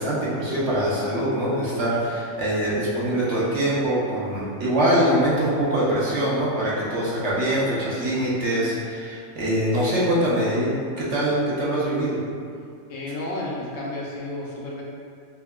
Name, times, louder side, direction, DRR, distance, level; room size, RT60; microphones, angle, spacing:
voice 1, 0.0-12.2, right 1 dB, 60° right, -7 dB, 0.9 m, -23 dB
voice 2, 12.9-14.8, left 1 dB, 70° left, -4 dB, 0.9 m, -31 dB
5.5 x 2.2 x 2.2 m, 2.3 s
omnidirectional pair, 1.5 m